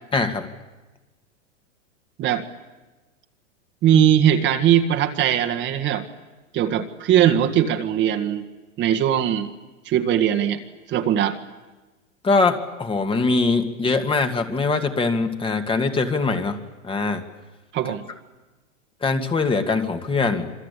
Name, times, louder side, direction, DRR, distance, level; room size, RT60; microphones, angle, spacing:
voice 1, 0.1-0.5 12.2-17.2 19.0-20.5, left 3 dB, 15° left, 6 dB, 2.1 m, -22 dB
voice 2, 3.8-6.1 6.5-8.4 8.8-9.5 9.9-10.6 10.9-11.4 17.7-18.0, right 10 dB, 30° right, 8 dB, 1.9 m, -20 dB
26.5 x 25.0 x 8.4 m, 1.2 s
hypercardioid pair, 120°, 38 cm